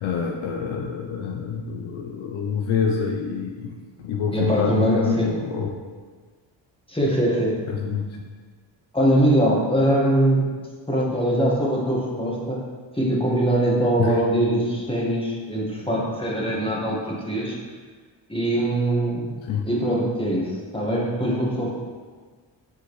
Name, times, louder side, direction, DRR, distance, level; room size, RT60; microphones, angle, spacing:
voice 1, 0.0-3.7 4.0-5.7 7.8-8.1 14.0-14.1 19.5-19.6, left 6 dB, 80° left, 1 dB, 0.7 m, -26 dB
voice 2, 4.3-5.3 6.9-7.6 8.9-10.5 10.9-12.6 12.9-17.6 18.3-19.3 19.6-21.7, right 1 dB, 10° left, -4 dB, 1.6 m, -22 dB
6.4 x 4.9 x 3.2 m, 1.5 s
cardioid pair, 70°, 47 cm